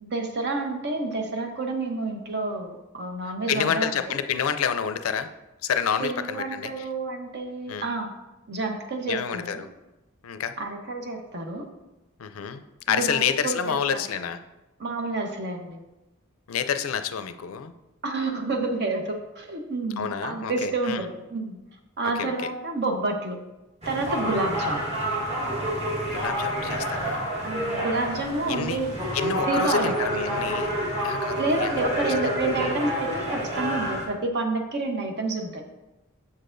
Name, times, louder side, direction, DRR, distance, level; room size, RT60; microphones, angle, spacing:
voice 1, 0.0-4.2 6.0-8.1 8.5-9.6 10.6-11.7 12.9-14.0 14.8-15.8 18.0-21.6 22.0-23.4 23.8-24.8 27.4-29.0 29.4-29.9 31.4-35.6, right 2 dB, 55° right, 3 dB, 0.9 m, -29 dB
voice 2, 3.5-5.3 5.6-6.9 7.7-7.9 9.1-9.7 10.2-10.5 12.2-12.6 12.9-14.4 16.5-17.7 20.0-21.1 22.1-22.5 26.1-27.3 28.4-28.8 29.1-30.7 31.0-32.3, left 7 dB, 80° left, 10 dB, 0.4 m, -28 dB
sound 1, 23.8-34.1, equal, 30° right, 1.5 m, -29 dB
7.1 x 6.5 x 2.6 m, 1.0 s
head